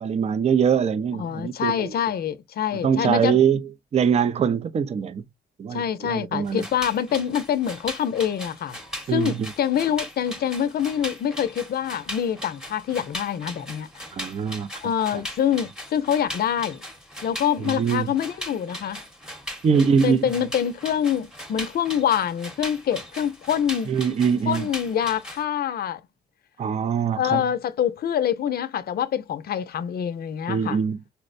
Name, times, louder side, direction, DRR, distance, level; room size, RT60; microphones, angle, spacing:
voice 1, 0.0-1.9 2.8-3.6 3.9-5.2 5.6-6.6 9.1-9.5 14.1-14.7 17.6-18.1 19.6-20.3 23.9-24.7 26.6-27.4 30.5-31.0, right 7 dB, 35° right, 0.4 m, -23 dB
voice 2, 1.1-3.4 5.7-8.8 9.1-13.9 14.8-16.8 17.2-19.0 19.7-23.9 24.5-26.0 27.2-30.8, left 9 dB, 50° left, 0.5 m, -25 dB
sound 1, 6.5-25.4, left 1 dB, 5° right, 0.9 m, -38 dB
4.3 x 2.1 x 2.4 m
cardioid pair, 90°, 20 cm